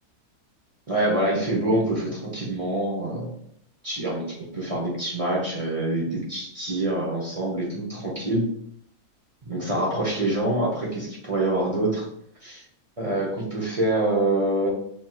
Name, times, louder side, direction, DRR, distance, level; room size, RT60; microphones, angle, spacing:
voice 1, 0.9-3.3 3.8-8.5 9.4-12.1 12.4-12.6 13.0-14.7, right 1 dB, 30° right, -4 dB, 0.7 m, -25 dB
5.5 x 3.0 x 2.3 m, 0.71 s
omnidirectional pair, 1.6 m